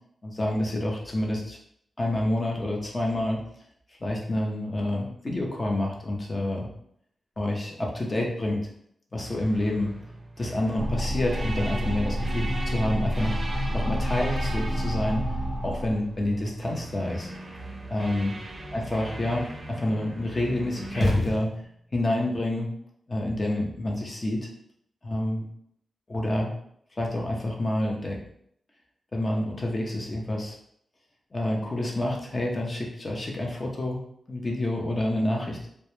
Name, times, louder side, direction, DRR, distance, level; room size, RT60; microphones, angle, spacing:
voice 1, 0.2-1.6 2.0-3.4 4.0-6.7 7.4-8.6 9.1-9.9 10.4-13.4 13.7-15.2 15.6-17.3 17.9-18.3 18.7-21.5 21.9-22.7 23.1-24.5 25.0-25.5 26.1-26.5 27.0-28.2 29.1-30.6 31.3-34.0 34.3-35.6, left 1 dB, 35° left, -1 dB, 0.6 m, -28 dB
sound 1, 9.2-21.2, right 2 dB, 40° right, 0.5 m, -39 dB
sound 2, 10.8-15.9, equal, 85° left, 1.1 m, -29 dB
sound 3, 20.9-22.0, left 1 dB, 65° left, 0.7 m, -27 dB
2.2 x 2.1 x 3.0 m, 0.69 s
cardioid pair, 65°, 0 cm